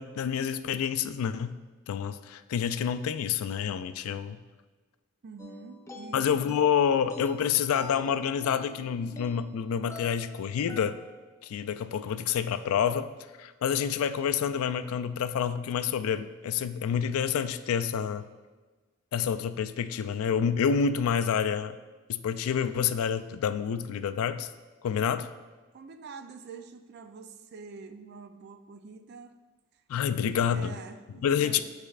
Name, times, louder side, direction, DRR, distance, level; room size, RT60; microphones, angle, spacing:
voice 1, 0.0-1.6 1.9-4.4 6.1-11.0 11.4-13.1 13.4-18.3 19.1-21.8 22.1-24.5 24.8-25.3 29.9-30.8 31.2-31.6, left 7 dB, 80° left, 12 dB, 0.3 m, -28 dB
voice 2, 5.2-6.3 25.7-29.4 30.1-31.6, right 4 dB, 50° right, 8 dB, 0.4 m, -46 dB
sound 1, 5.4-11.3, left 2 dB, 15° left, 0.5 m, -47 dB
9.9 x 4.2 x 2.4 m, 1.3 s
head